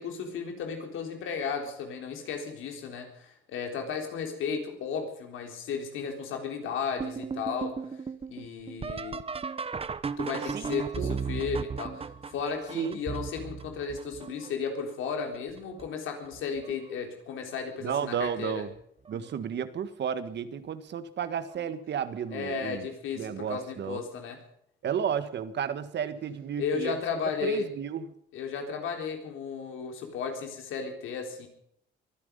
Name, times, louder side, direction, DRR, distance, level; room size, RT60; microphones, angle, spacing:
voice 1, 0.0-7.7 8.3-9.2 10.2-18.6 22.3-24.4 26.6-27.7 28.3-31.5, left 6 dB, 85° left, 4 dB, 3.9 m, -34 dB
sound 1, 7.0-14.7 15.3-15.9 16.3-17.0 18.2-18.3 19.1-19.4 21.5-21.7 24.0-24.1, right 5 dB, 30° right, 0.9 m, -36 dB
voice 2, 10.5-11.2 12.7-13.0 17.8-18.7 19.1-22.9 23.2-24.0 24.8-27.0 27.4-28.0, right 8 dB, 60° right, 12 dB, 1.6 m, -32 dB
23.0 x 11.0 x 5.3 m, 0.68 s
cardioid pair, 90°, 20 cm